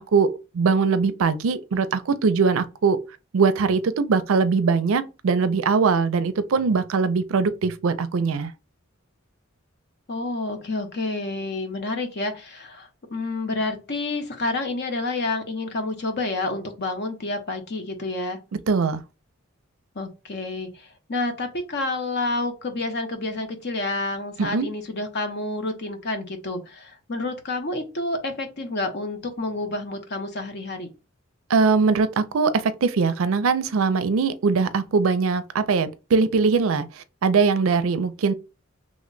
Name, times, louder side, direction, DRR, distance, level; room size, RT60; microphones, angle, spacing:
voice 1, 0.0-3.0 3.3-8.5 18.7-19.0 24.4-24.7 31.5-38.3, right 5 dB, 70° right, 0.4 m, -21 dB
voice 2, 10.1-18.4 19.9-30.9, left 2 dB, 55° left, 0.8 m, -29 dB
3.1 x 2.2 x 3.8 m
head